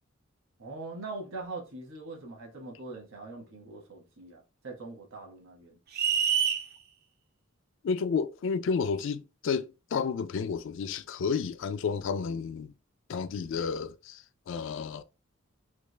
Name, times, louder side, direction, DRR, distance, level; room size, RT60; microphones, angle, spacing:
voice 1, 0.6-5.8, right 3 dB, 70° right, 1.1 m, -42 dB
sound 1, 5.9-6.7, right 7 dB, 45° right, 0.4 m, -26 dB
voice 2, 7.8-12.7 13.1-15.0, left 5 dB, 60° left, 0.3 m, -31 dB
3.3 x 2.4 x 3.2 m
head